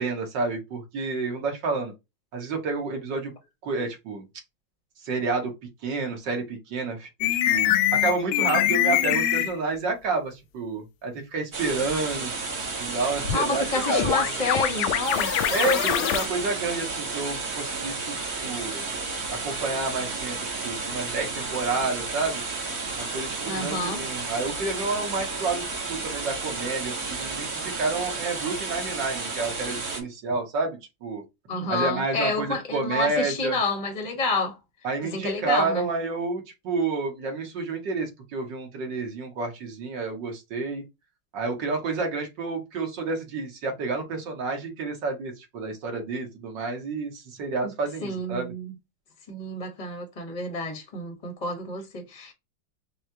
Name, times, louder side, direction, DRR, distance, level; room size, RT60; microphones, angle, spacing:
voice 1, 0.0-1.9 2.3-3.3 3.6-4.3 5.0-5.5 5.8-12.3 12.8-14.5 15.5-18.9 19.3-22.4 23.0-31.2 31.7-33.6 34.8-40.8 41.3-48.5, right 3 dB, 60° right, 1.9 m, -30 dB
sound 1, 7.2-9.6 13.2-16.3, left 11 dB, 80° left, 1.3 m, -24 dB
sound 2, 11.5-30.0, right 3 dB, 35° right, 1.3 m, -32 dB
voice 2, 13.3-15.3 23.4-24.0 31.5-34.6 35.0-35.9 47.6-47.7 48.0-48.7 49.3-52.3, left 2 dB, 30° left, 0.9 m, -29 dB
6.2 x 2.4 x 2.8 m
omnidirectional pair, 2.2 m